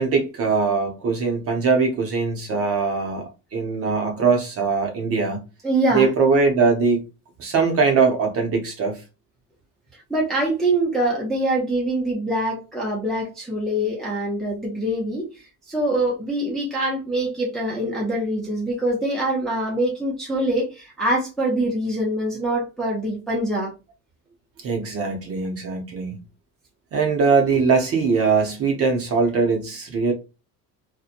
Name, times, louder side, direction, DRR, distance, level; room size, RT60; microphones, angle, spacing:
voice 1, 0.0-5.4 5.9-7.0 7.4-9.0 24.6-26.1 26.9-30.1, right 4 dB, 40° right, 0.6 m, -21 dB
voice 2, 5.6-6.1 10.1-15.3 15.7-23.7, right 1 dB, ahead, 0.4 m, -24 dB
2.8 x 2.1 x 2.4 m
cardioid pair, 180°, 37 cm